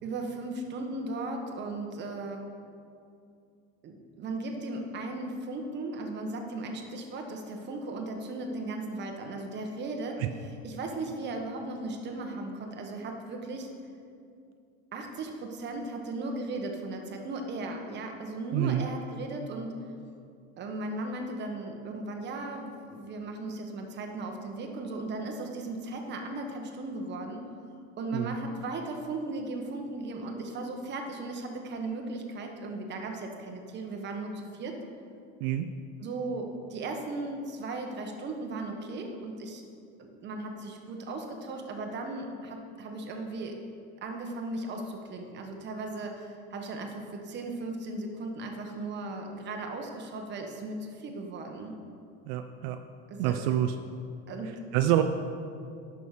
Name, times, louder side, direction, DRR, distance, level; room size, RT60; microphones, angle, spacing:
voice 1, 0.0-2.5 3.8-13.7 14.9-19.8 20.6-27.4 28.0-34.8 36.0-39.6 40.0-43.6 44.0-51.8 53.1-53.4 54.3-54.6, right 2 dB, 35° right, 3 dB, 1.2 m, -37 dB
voice 2, 18.5-18.9 28.1-28.3 35.4-35.7 52.3-52.8 53.2-53.7 54.7-55.0, right 12 dB, 75° right, 8 dB, 0.5 m, -27 dB
11.0 x 6.3 x 4.8 m, 2.4 s
cardioid pair, 150°, 31 cm